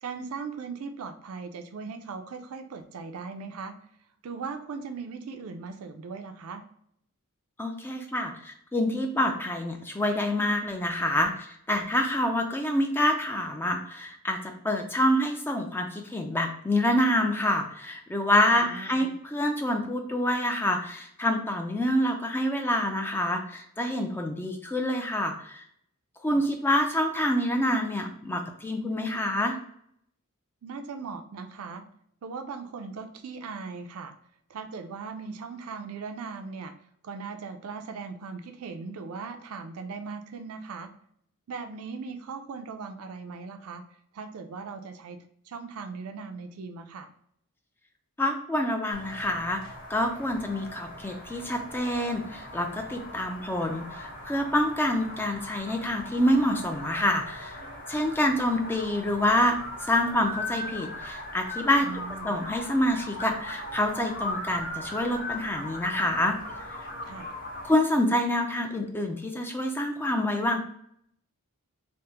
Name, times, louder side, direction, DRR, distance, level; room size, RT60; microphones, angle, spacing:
voice 1, 0.0-3.7 4.2-6.6 18.5-19.1 26.3-26.5 30.6-31.8 32.2-34.1 34.5-36.7 37.0-40.9 41.5-43.8 44.1-47.1 58.3-58.4 61.8-62.4 67.1-67.3, right 5 dB, 70° right, 7 dB, 0.4 m, -39 dB
voice 2, 7.6-25.6 26.2-29.6 48.2-57.6 57.9-61.9 62.2-66.4 67.6-70.6, left 1 dB, 10° left, 4 dB, 0.3 m, -27 dB
sound 1, 48.9-67.7, left 1 dB, 40° left, 0.7 m, -39 dB
3.4 x 2.1 x 2.8 m, 0.67 s
head